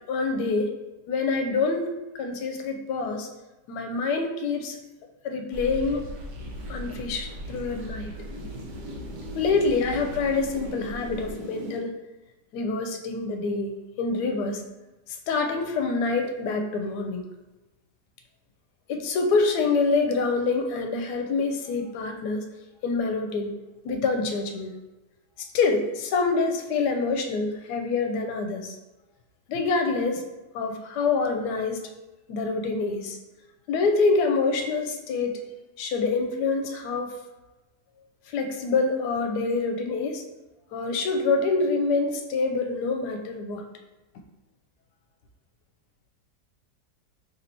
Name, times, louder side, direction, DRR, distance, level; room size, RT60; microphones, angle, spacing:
voice 1, 0.1-0.7 1.1-3.3 3.7-4.8 5.2-6.1 6.7-8.1 9.3-11.9 12.5-14.6 15.3-17.2 18.9-22.4 22.8-23.5 23.8-24.7 25.4-28.8 29.5-30.2 30.5-31.8 32.3-33.2 33.7-35.4 35.8-37.1 38.3-40.2 40.7-43.6, left 4 dB, 80° left, 5 dB, 1.1 m, -26 dB
sound 1, 5.5-11.8, right 1 dB, 90° right, 1.4 m, -38 dB
3.2 x 2.7 x 4.3 m, 1.1 s
omnidirectional pair, 1.7 m